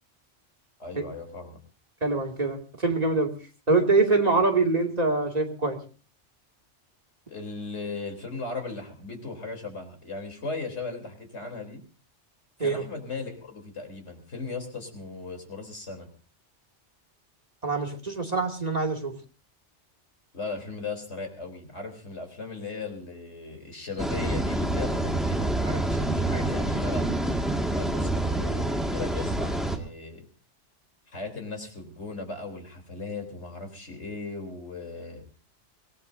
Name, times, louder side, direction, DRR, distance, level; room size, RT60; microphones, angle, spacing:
voice 1, 0.8-1.6 7.3-11.8 12.6-16.1 20.3-27.1 27.7-30.3 31.1-35.2, left 3 dB, 75° left, 3 dB, 3.9 m, -37 dB
voice 2, 2.0-3.3 3.7-5.8 12.6-12.8 17.6-19.1, right 3 dB, 35° right, 1 dB, 2.6 m, -24 dB
sound 1, 24.0-29.8, right 1 dB, ahead, 1.9 m, -27 dB
24.5 x 17.5 x 2.7 m, 0.38 s
omnidirectional pair, 1.2 m